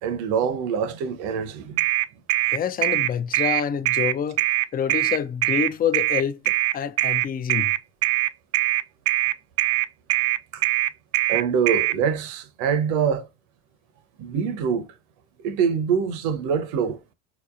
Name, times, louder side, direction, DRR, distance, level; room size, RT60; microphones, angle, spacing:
voice 1, 0.0-1.8 10.5-10.6 11.3-13.3 14.2-14.9 15.4-17.0, right 7 dB, 65° right, 0.8 m, -24 dB
sound 1, 1.8-12.0, right 17 dB, 45° right, 0.4 m, -22 dB
voice 2, 2.4-4.4 4.7-7.7, left 8 dB, 25° left, 0.5 m, -27 dB
4.0 x 3.0 x 2.4 m
hypercardioid pair, 80°, 33 cm